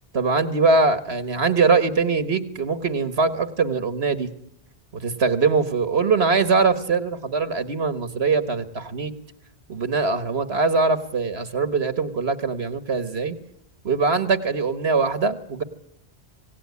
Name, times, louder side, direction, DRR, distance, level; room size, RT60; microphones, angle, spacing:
voice 1, 0.1-4.3 4.9-9.1 9.7-13.4 13.8-15.6, right 4 dB, 75° right, 11 dB, 1.8 m, -22 dB
26.5 x 17.5 x 9.7 m, 0.74 s
omnidirectional pair, 1.1 m